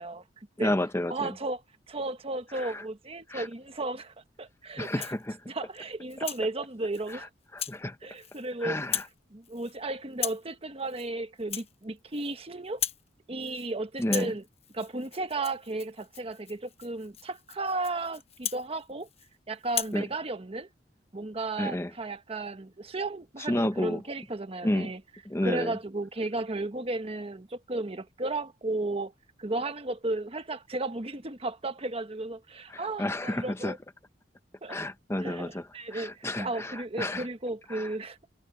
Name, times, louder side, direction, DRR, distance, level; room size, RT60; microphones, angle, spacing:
voice 1, 0.0-0.7 1.1-1.6 1.9-5.1 5.5-7.3 8.0-8.8 9.3-12.8 13.3-14.4 14.7-19.1 19.5-20.7 21.1-25.0 25.4-29.1 29.4-33.8 34.6-34.8 35.2-38.3, right 2 dB, 35° right, 1.2 m, -34 dB
voice 2, 0.6-1.3 2.5-2.8 3.3-3.5 4.8-5.4 7.1-7.2 7.5-8.0 8.6-9.0 14.0-14.3 19.9-20.0 21.6-21.9 23.5-24.0 24.6-24.9 25.3-25.7 32.7-33.7 34.7-35.6 35.9-37.3 37.7-37.9, left 1 dB, 15° left, 0.8 m, -31 dB
Rattle (instrument), 4.8-5.3 5.7-6.4 6.9-7.2 7.6-7.8 8.1-8.5 8.8-9.2 9.4-9.8 10.1-10.5 10.9-11.1 11.4-12.4 12.6-13.1 13.4-13.7 14.0-19.3 19.7-20.0, left 9 dB, 35° left, 1.1 m, -37 dB
head